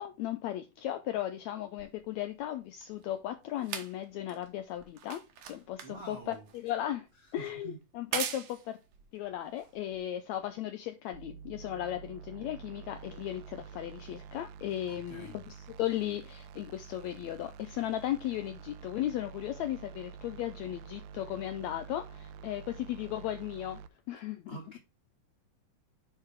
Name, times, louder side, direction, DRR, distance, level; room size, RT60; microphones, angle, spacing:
voice 1, 0.0-7.1 7.3-8.8 9.1-15.4 15.8-23.8 24.1-24.6, left 12 dB, 80° left, 1.6 m, -36 dB
sound 1, 1.8-10.4 11.2-11.3, right 8 dB, 65° right, 1.9 m, -43 dB
voice 2, 5.8-6.5 7.1-7.9 14.9-15.5 24.5-24.8, right 3 dB, 45° right, 0.7 m, -47 dB
sound 2, 11.1-23.9, right 7 dB, 85° right, 2.1 m, -48 dB
9.8 x 3.7 x 4.6 m
omnidirectional pair, 3.8 m